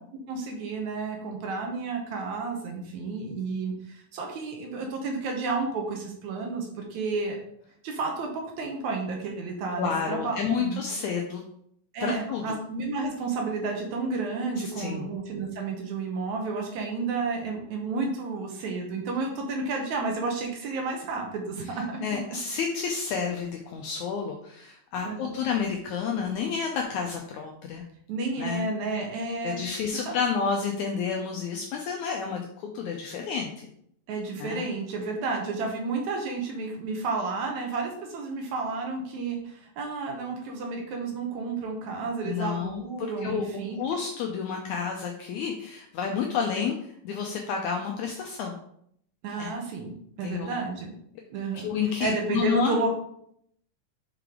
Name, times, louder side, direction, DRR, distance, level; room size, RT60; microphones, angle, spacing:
voice 1, 0.3-7.4 7.8-10.8 11.9-22.0 25.0-25.4 28.1-29.6 30.1-30.2 34.1-43.8 49.2-50.9 51.3-51.7 52.0-53.0, right 3 dB, 70° right, 2 dB, 1.9 m, -31 dB
voice 2, 9.8-11.4 12.0-12.6 14.8-15.0 22.0-27.8 28.4-28.7 29.4-33.7 34.4-34.7 42.2-43.4 43.8-48.5 49.4-49.5 50.2-50.6 51.6-52.8, left 6 dB, 85° left, 1 dB, 1.7 m, -30 dB
5.8 x 5.0 x 3.7 m, 0.69 s
omnidirectional pair, 4.1 m